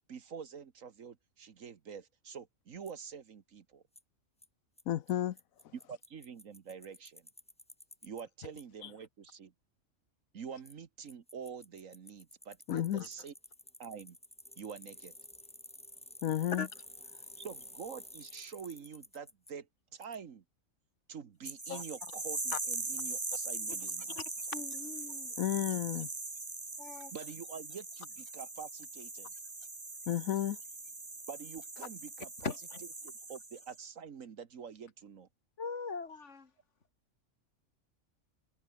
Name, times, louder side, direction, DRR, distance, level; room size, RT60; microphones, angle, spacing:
voice 1, 0.0-3.8 5.7-7.3 8.0-9.5 10.3-13.3 13.8-14.2 14.6-15.1 17.4-20.4 21.1-24.2 27.1-29.3 31.3-32.5 33.0-35.3, right 6 dB, 70° right, 1.7 m, -46 dB
Bicycle, 2.9-3.0 4.0-4.1 4.4-4.5 4.8-4.9 5.1-5.2 5.4-8.2 8.6-8.7 10.6-10.7 11.1-19.5 20.0-20.2, left 1 dB, 5° left, 1.0 m, -52 dB
voice 2, 4.9-5.4 12.7-13.1 16.2-16.7 21.7-21.8 25.4-26.1 30.1-30.6, left 11 dB, 80° left, 1.2 m, -32 dB
sound 1, 21.4-33.8, right 3 dB, 20° right, 1.3 m, -41 dB
voice 3, 24.5-25.3 26.8-27.1 32.4-32.8 35.6-36.5, left 4 dB, 55° left, 2.4 m, -40 dB
omnidirectional pair, 1.4 m